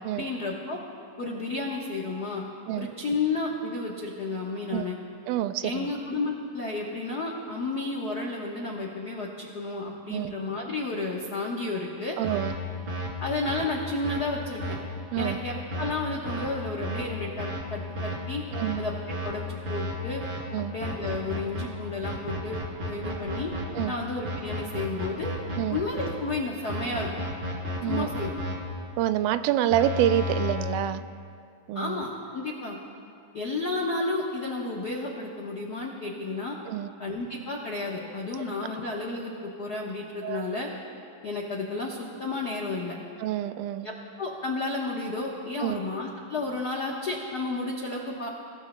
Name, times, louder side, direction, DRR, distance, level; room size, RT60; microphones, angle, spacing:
voice 1, 0.1-0.8 1.2-2.4 2.8-5.0 5.6-12.2 13.2-14.8 15.2-18.4 18.8-20.2 20.7-22.6 22.9-23.5 23.9-25.3 25.7-27.1 27.9-28.5 31.7-32.8 33.3-36.6 37.0-40.7 41.2-43.0 43.8-48.3, left 3 dB, 85° left, -2 dB, 0.8 m, -32 dB
voice 2, 5.3-5.9 10.1-10.3 12.2-12.6 15.1-15.4 18.5-18.8 20.5-20.7 23.7-24.0 25.6-25.8 27.8-28.1 29.0-31.1 31.7-32.1 36.7-36.9 40.2-40.4 43.2-43.9 45.6-45.8, right 12 dB, 85° right, 11 dB, 2.1 m, -27 dB
sound 1, 12.2-12.5 12.9-13.1 13.5-13.6 14.0-14.2 14.6-14.8 15.2-15.3 15.7-15.9 16.3-16.5 16.8-17.0 17.4-17.6 18.0-18.1 18.5-18.7 19.1-19.3 19.7-19.9 20.2-20.4 20.8-21.6 22.0-23.8 24.2-26.1 26.7-28.5 29.7-30.5, equal, 40° right, 3.5 m, -32 dB
28.5 x 17.5 x 2.2 m, 2.4 s
omnidirectional pair, 3.7 m